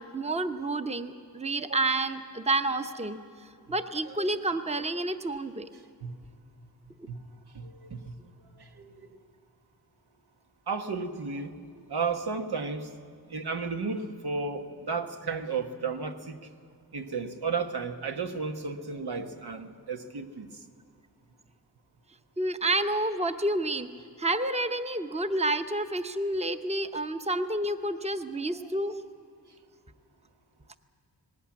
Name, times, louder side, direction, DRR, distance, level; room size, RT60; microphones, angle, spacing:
voice 1, 0.0-3.2 3.7-5.7 22.4-23.9 24.2-29.0, right 2 dB, 15° right, 9 dB, 0.8 m, -29 dB
voice 2, 5.7-6.2 7.1-7.2 7.5-9.2 10.7-12.9 13.3-16.5 16.9-20.6, right 4 dB, 90° right, 5 dB, 1.3 m, -34 dB
19.5 x 18.0 x 8.6 m, 2.2 s
wide cardioid pair, 105°, 38 cm